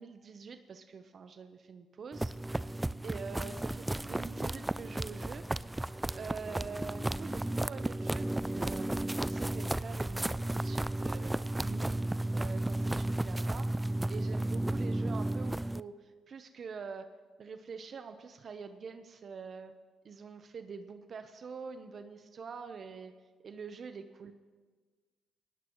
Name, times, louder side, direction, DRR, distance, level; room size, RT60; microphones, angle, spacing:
voice 1, 0.0-5.5 6.1-12.0 12.3-17.1 17.4-19.7 20.0-23.1 23.4-24.3, right 5 dB, 50° right, 8 dB, 0.8 m, -45 dB
sound 1, 2.1-15.8, right 1 dB, 10° right, 0.3 m, -33 dB
19.5 x 18.0 x 3.1 m, 1.5 s
cardioid pair, 90°, 0 cm